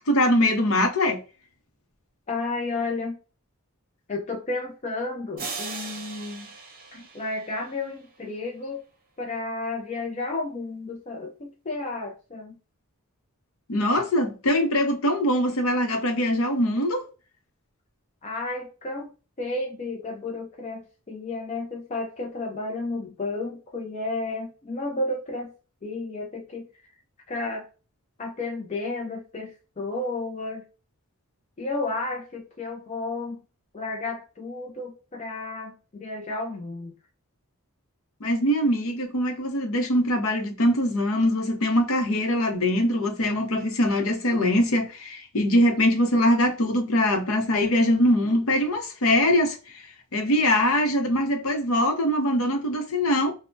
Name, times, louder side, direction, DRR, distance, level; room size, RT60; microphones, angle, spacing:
voice 1, 0.1-1.2 6.9-7.0 13.7-17.0 38.2-49.8 50.1-53.3, left 1 dB, 65° left, 0.7 m, -22 dB
voice 2, 2.3-3.2 4.1-6.5 7.1-8.8 9.2-12.6 18.2-19.1 19.4-25.5 25.8-26.9 27.3-27.7 28.2-30.7 31.6-33.4 33.7-36.9, left 2 dB, 30° left, 0.4 m, -32 dB
sound 1, 5.4-8.0, right 4 dB, 40° right, 0.8 m, -38 dB
3.2 x 2.1 x 2.5 m
head